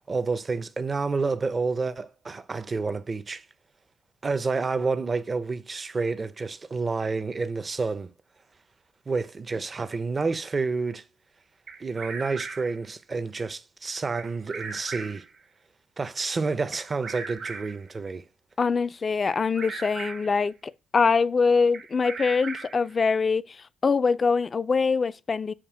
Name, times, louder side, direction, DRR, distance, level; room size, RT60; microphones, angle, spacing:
voice 1, 0.0-3.4 4.2-8.1 9.1-11.0 11.8-15.2 16.0-18.2, right 4 dB, 30° right, 0.5 m, -29 dB
Bird vocalization bird call bird song, 11.7-12.8 14.2-15.3 16.7-17.9 19.3-20.4 21.7-22.9, right 5 dB, 55° right, 1.0 m, -38 dB
voice 2, 18.6-23.4 23.8-25.5, left 5 dB, 35° left, 0.3 m, -23 dB
7.2 x 2.7 x 4.8 m
cardioid pair, 90°, 0 cm